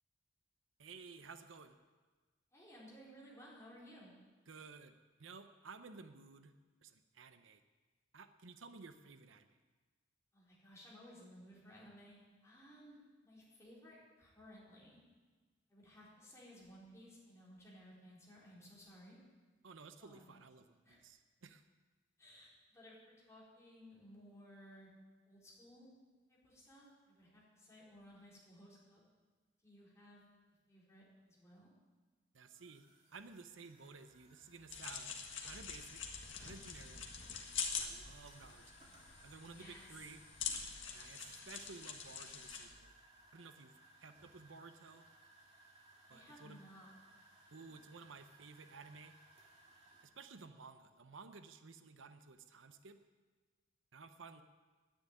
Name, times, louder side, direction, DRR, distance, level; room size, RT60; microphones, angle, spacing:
voice 1, 0.8-1.8 4.5-4.9 5.2-6.5 6.8-7.6 8.1-9.6 19.6-21.6 32.3-32.8 33.1-35.1 35.4-36.0 36.4-37.0 37.8-38.8 39.2-40.2 40.9-42.9 43.3-45.1 46.1-46.6 47.5-49.2 50.0-53.0 53.9-54.4, right 4 dB, 80° right, 9 dB, 0.7 m, -55 dB
voice 2, 2.5-4.1 10.3-13.0 13.2-15.0 15.7-19.2 20.0-20.3 20.8-21.0 22.2-24.9 25.3-25.9 26.3-29.0 29.6-30.2 30.7-31.7 39.5-40.1 46.1-46.9, equal, 15° left, -7 dB, 4.3 m, -58 dB
sound 1, 32.5-50.0, right 2 dB, 30° right, 2.4 m, -64 dB
sound 2, 34.7-42.7, left 6 dB, 80° left, 1.7 m, -45 dB
10.0 x 9.9 x 9.3 m, 1.4 s
head